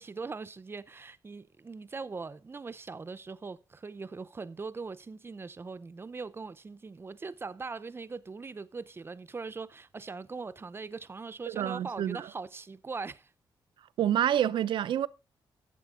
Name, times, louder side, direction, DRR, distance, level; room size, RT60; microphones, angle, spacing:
voice 1, 0.0-13.3, right 4 dB, 30° right, 0.6 m, -41 dB
voice 2, 11.5-12.3 14.0-15.1, right 10 dB, 80° right, 0.6 m, -28 dB
12.0 x 7.6 x 3.7 m
cardioid pair, 100°, 8 cm